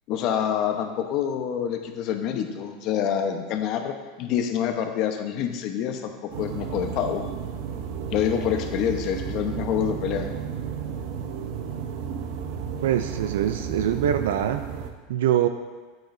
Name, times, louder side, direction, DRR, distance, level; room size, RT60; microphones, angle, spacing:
voice 1, 0.1-7.3 8.1-10.3, left 9 dB, 55° left, 6 dB, 0.9 m, -27 dB
sound 1, 6.3-14.9, right 7 dB, 65° right, 0.8 m, -33 dB
voice 2, 12.8-14.6 15.1-15.5, right 10 dB, 80° right, 8 dB, 0.4 m, -23 dB
10.5 x 8.2 x 2.7 m, 1.4 s
hypercardioid pair, 105°, 0 cm